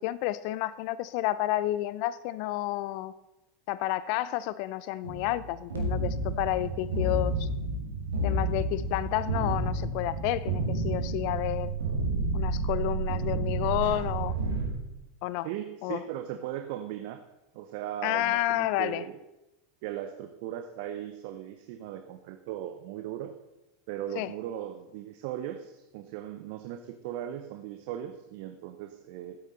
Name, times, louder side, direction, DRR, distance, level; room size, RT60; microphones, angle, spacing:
voice 1, 0.0-3.1 3.7-7.5 8.2-11.7 12.3-14.3 15.2-15.5 15.8-16.0 18.0-19.0 24.2-24.3, left 15 dB, 55° left, 17 dB, 0.5 m, -30 dB
sound 1, 5.0-14.7, right 2 dB, 85° right, 2.1 m, -30 dB
voice 2, 15.4-17.2 17.5-19.1 19.8-23.3 23.9-29.4, right 11 dB, 60° right, 8 dB, 0.7 m, -38 dB
14.5 x 8.3 x 4.0 m, 0.98 s
hypercardioid pair, 85°, 0 cm